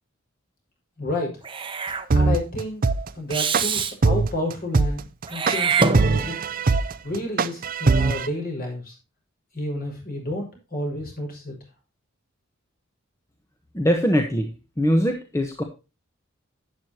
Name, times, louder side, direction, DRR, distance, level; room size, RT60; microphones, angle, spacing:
voice 1, 1.0-1.3 2.1-2.8 3.1-6.4 7.0-8.9 9.5-11.6, left 1 dB, 45° left, 0 dB, 5.7 m, -30 dB
Meow / Hiss, 1.4-2.1 3.3-3.9 5.3-6.5, right 5 dB, 25° right, 1.0 m, -25 dB
sound 1, 2.1-8.3, right 3 dB, 45° right, 0.5 m, -20 dB
voice 2, 13.7-14.5 14.8-15.6, equal, 15° left, 4 dB, 1.2 m, -21 dB
11.5 x 9.5 x 2.9 m, 0.30 s
head